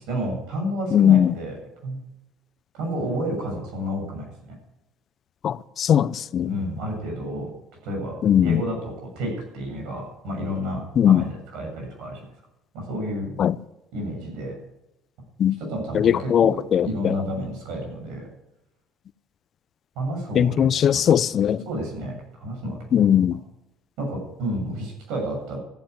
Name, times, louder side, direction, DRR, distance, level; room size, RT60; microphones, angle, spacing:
voice 1, 0.0-2.0 2.7-4.3 6.5-7.5 7.8-8.2 8.4-12.2 12.7-13.3 13.9-14.5 15.6-18.3 20.0-21.0 21.6-23.0 24.0-25.6, equal, 75° right, 7.6 m, -30 dB
voice 2, 0.9-1.3 5.4-6.5 8.2-8.6 11.0-11.2 13.4-13.5 15.4-15.6 15.9-17.1 20.3-21.6 22.9-23.4, left 9 dB, 50° left, 0.6 m, -19 dB
14.0 x 8.6 x 9.8 m
supercardioid pair, 80°, 0 cm